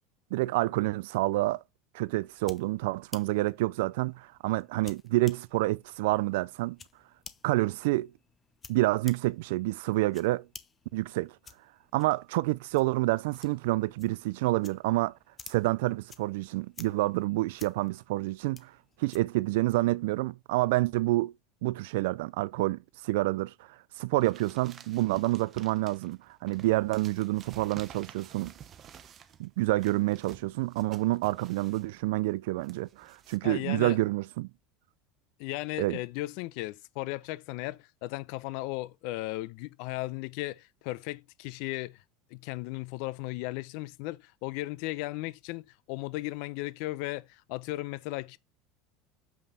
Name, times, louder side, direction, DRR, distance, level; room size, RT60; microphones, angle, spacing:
voice 1, 0.3-1.6 1.9-6.8 7.4-8.1 8.7-10.5 10.9-11.3 11.9-15.1 15.5-18.7 19.0-21.3 21.6-23.5 24.0-28.5 29.4-34.5 35.8-36.0, right 19 dB, 80° right, 0.4 m, -28 dB
sound 1, 2.1-19.5, left 5 dB, 20° left, 0.8 m, -54 dB
sound 2, 24.2-33.4, right 8 dB, 30° right, 0.9 m, -52 dB
voice 2, 33.4-34.0 35.4-42.0 42.3-48.4, left 19 dB, 60° left, 0.7 m, -36 dB
7.4 x 5.5 x 4.0 m
cardioid pair, 160°, 0 cm